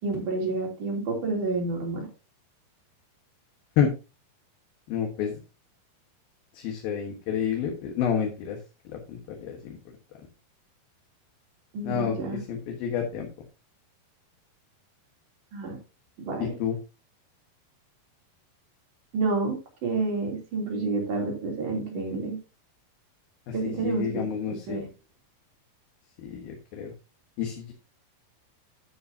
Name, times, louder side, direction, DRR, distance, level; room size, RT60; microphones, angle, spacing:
voice 1, 0.0-2.1 11.7-12.4 15.5-15.8 16.2-16.5 19.1-22.4 23.5-24.2 24.7-24.9, right 3 dB, 50° right, 0 dB, 4.5 m, -29 dB
voice 2, 4.9-5.4 6.5-8.6 8.9-9.8 11.8-13.3 16.4-16.8 23.5-24.8 26.2-26.9 27.4-27.7, left 8 dB, 70° left, 2 dB, 3.1 m, -29 dB
11.0 x 9.9 x 2.8 m, 0.29 s
omnidirectional pair, 4.7 m